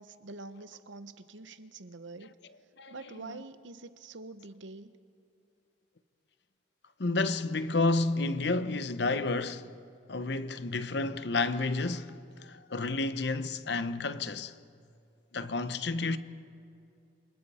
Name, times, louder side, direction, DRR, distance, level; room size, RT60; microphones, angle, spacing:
voice 1, 0.0-2.4 2.9-5.0, right 3 dB, 75° right, 0.9 m, -46 dB
voice 2, 2.2-3.4 7.0-9.7 10.1-14.5 15.3-16.2, left 3 dB, 60° left, 0.8 m, -31 dB
28.0 x 25.5 x 4.3 m
head